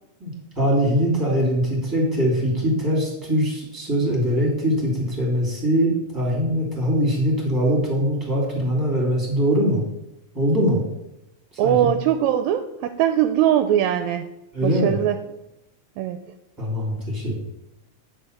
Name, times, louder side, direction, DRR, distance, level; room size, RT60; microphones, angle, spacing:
voice 1, 0.2-9.8 10.3-10.8 11.6-12.0 14.5-15.0 16.6-17.4, equal, 5° right, -2 dB, 2.7 m, -22 dB
voice 2, 11.6-14.3 14.6-15.2 16.0-16.2, right 11 dB, 80° right, 9 dB, 1.8 m, -21 dB
9.7 x 4.6 x 6.7 m, 0.90 s
omnidirectional pair, 3.4 m